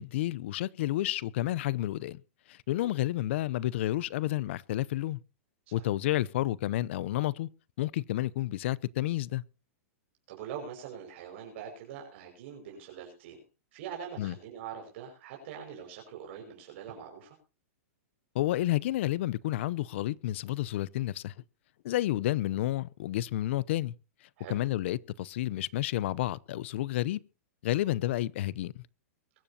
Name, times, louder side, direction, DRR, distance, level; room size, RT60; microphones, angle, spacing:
voice 1, 0.0-2.2 2.5-5.2 5.7-7.5 7.8-9.4 14.2-14.4 18.3-21.3 21.8-23.9 24.5-27.2 27.6-28.8, left 15 dB, 55° left, 0.7 m, -30 dB
voice 2, 10.3-13.4 13.7-17.4 24.4-24.6, right 8 dB, 50° right, 5.6 m, -43 dB
23.0 x 12.5 x 2.8 m
supercardioid pair, 155°, 8 cm